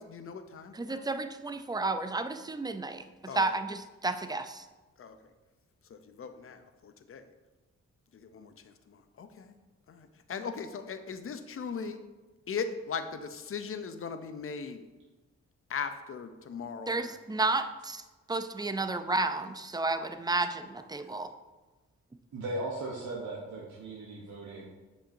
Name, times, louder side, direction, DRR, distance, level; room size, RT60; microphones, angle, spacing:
voice 1, 0.0-1.1 3.3-3.4 5.0-5.2 5.9-7.2 8.1-9.6 9.9-12.0 12.5-14.8 15.7-17.2, left 5 dB, 50° left, 9 dB, 0.6 m, -39 dB
voice 2, 0.7-3.1 3.3-4.7 16.9-18.0 18.3-21.3, right 2 dB, 15° right, 9 dB, 0.4 m, -32 dB
voice 3, 22.3-24.7, right 2 dB, 75° right, -4 dB, 1.0 m, -37 dB
7.1 x 5.3 x 2.6 m, 1.2 s
cardioid pair, 60°, 29 cm